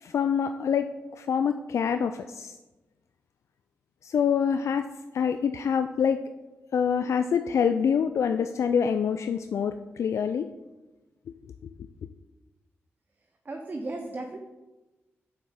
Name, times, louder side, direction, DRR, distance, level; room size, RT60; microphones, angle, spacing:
voice 1, 0.0-0.9 1.2-2.5 4.0-4.9 5.1-6.2 6.7-10.5 11.3-11.5, left 7 dB, 70° left, 8 dB, 0.4 m, -26 dB
voice 2, 13.4-14.4, right 2 dB, 40° right, 4 dB, 0.9 m, -35 dB
6.0 x 5.5 x 6.9 m, 1.1 s
cardioid pair, 55°, 5 cm